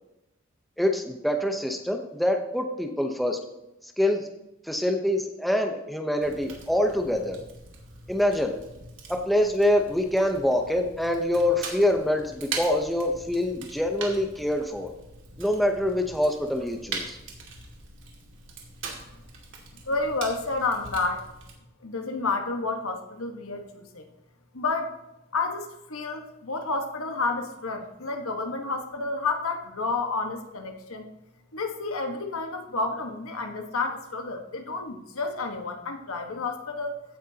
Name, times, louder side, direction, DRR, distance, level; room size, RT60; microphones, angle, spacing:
voice 1, 0.8-3.4 4.0-4.3 4.6-7.4 8.1-8.5 9.1-14.9 15.4-17.2, left 1 dB, ahead, 3 dB, 0.8 m, -25 dB
Fire, 6.2-21.5, right 4 dB, 60° right, 2.3 m, -41 dB
voice 2, 19.8-21.2 21.8-24.1 24.5-24.9 25.3-31.1 31.5-37.0, left 3 dB, 85° left, 4 dB, 1.5 m, -30 dB
15.5 x 8.9 x 2.9 m, 0.93 s
head